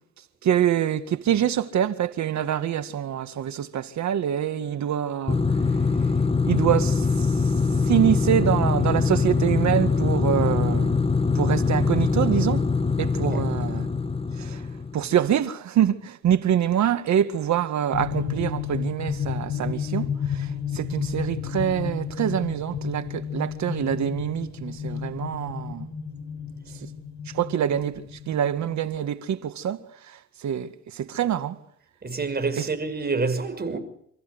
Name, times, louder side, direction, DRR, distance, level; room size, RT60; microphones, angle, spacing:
voice 1, 0.4-5.4 6.5-7.5 7.8-11.0 11.3-12.7 13.0-13.9 14.4-14.7 14.9-25.9 26.8-26.9 27.3-31.6 32.6-32.7, right 10 dB, 65° right, 2.0 m, -25 dB
sound 1, 5.3-15.1, left 4 dB, 20° left, 1.1 m, -23 dB
sound 2, 17.9-29.1, left 7 dB, 60° left, 4.9 m, -32 dB
voice 2, 32.0-33.8, right 4 dB, 30° right, 6.1 m, -27 dB
29.0 x 14.5 x 8.1 m
cardioid pair, 90°, 30 cm